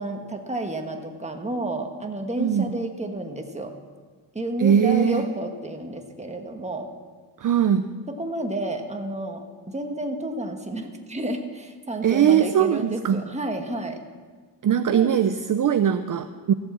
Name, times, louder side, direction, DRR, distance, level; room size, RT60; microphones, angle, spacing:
voice 1, 0.0-3.7 4.3-6.9 8.1-14.0 14.9-15.1, right 1 dB, 15° right, 4 dB, 1.3 m, -31 dB
voice 2, 2.4-2.7 4.6-5.3 7.4-7.9 12.0-13.2 14.6-16.5, right 9 dB, 45° right, 10 dB, 0.5 m, -21 dB
14.5 x 7.4 x 7.4 m, 1.5 s
wide cardioid pair, 120°, 44 cm